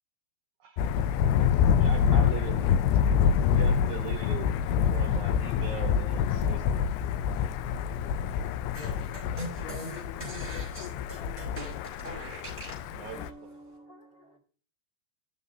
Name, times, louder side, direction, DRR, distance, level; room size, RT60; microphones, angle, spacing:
voice 1, 0.6-1.2 1.5-2.8 3.4-4.5 4.9-6.9 12.9-13.6, right 9 dB, 85° right, 1.7 m, -41 dB
Thunder, 0.8-13.3, left 7 dB, 80° left, 2.2 m, -26 dB
voice 2, 7.9-8.5 9.6-11.6, left 6 dB, 50° left, 2.9 m, -47 dB
sound 1, 8.7-12.9, right 1 dB, 5° left, 3.9 m, -41 dB
voice 3, 13.1-14.4, right 1 dB, 25° left, 1.9 m, -50 dB
13.0 x 6.5 x 2.7 m
omnidirectional pair, 4.5 m